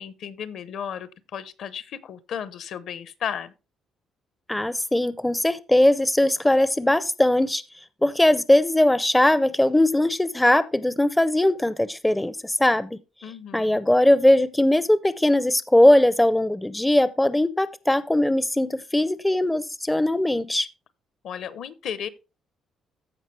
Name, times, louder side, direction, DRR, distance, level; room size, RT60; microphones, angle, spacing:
voice 1, 0.0-3.5 13.2-13.8 21.2-22.1, left 8 dB, 65° left, 0.8 m, -34 dB
voice 2, 4.5-7.6 8.0-13.0 13.5-20.7, left 1 dB, 5° left, 0.4 m, -20 dB
14.5 x 5.1 x 3.2 m
cardioid pair, 140°, 0 cm